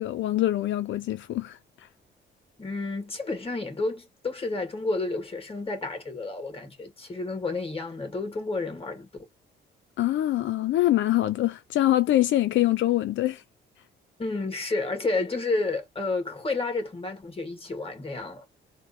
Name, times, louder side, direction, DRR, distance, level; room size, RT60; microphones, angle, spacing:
voice 1, 0.0-1.6 10.0-13.4, left 14 dB, 70° left, 0.5 m, -24 dB
voice 2, 2.6-9.3 14.2-18.4, left 3 dB, 30° left, 2.2 m, -31 dB
4.0 x 2.1 x 4.2 m
cardioid pair, 90°, 20 cm